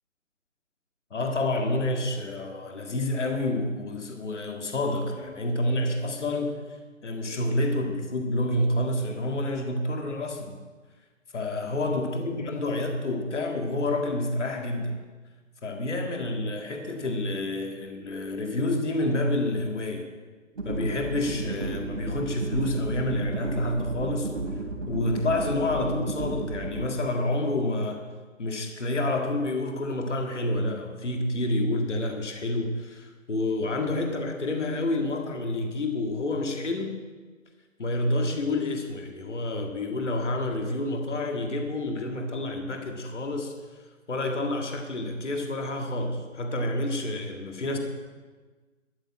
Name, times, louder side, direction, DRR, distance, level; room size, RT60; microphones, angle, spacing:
voice 1, 1.1-6.6 7.0-10.6 11.3-15.0 15.6-20.1 20.6-24.3 24.9-28.0 28.4-36.9 37.8-43.5 44.1-47.8, left 1 dB, 65° left, 3 dB, 2.0 m, -28 dB
sound 1, 20.5-26.9, right 3 dB, 40° right, 3.1 m, -33 dB
13.0 x 6.9 x 8.5 m, 1.4 s
hypercardioid pair, 170°, 39 cm